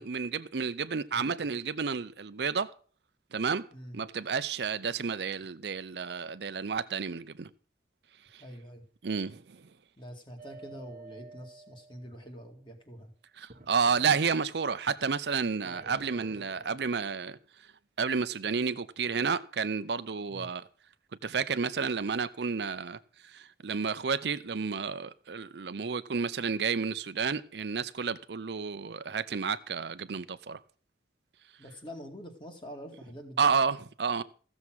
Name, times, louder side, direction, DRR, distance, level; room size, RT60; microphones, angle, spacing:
voice 1, 0.0-2.7 3.3-3.6 3.9-7.5 8.3-8.4 9.0-9.6 13.4-17.4 18.0-20.7 21.2-23.0 23.2-30.6 33.4-34.2, right 5 dB, 70° right, 0.6 m, -31 dB
voice 2, 8.4-8.8 10.0-13.1 20.3-20.5 31.6-33.5, equal, 25° left, 2.2 m, -45 dB
sound 1, 10.4-12.4 13.5-14.7 15.6-17.0, right 3 dB, 45° right, 1.3 m, -51 dB
15.0 x 7.2 x 6.2 m
head